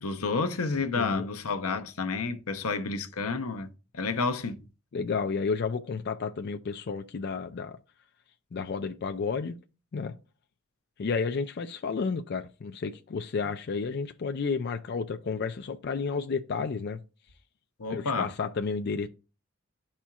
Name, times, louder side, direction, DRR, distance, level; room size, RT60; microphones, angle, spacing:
voice 1, 0.0-4.7 17.8-18.3, left 4 dB, 90° left, 0.8 m, -30 dB
voice 2, 0.9-1.3 4.9-7.8 8.5-9.6 9.9-10.1 11.0-17.0 17.9-19.1, left 5 dB, 50° left, 0.4 m, -31 dB
12.0 x 4.3 x 2.3 m
head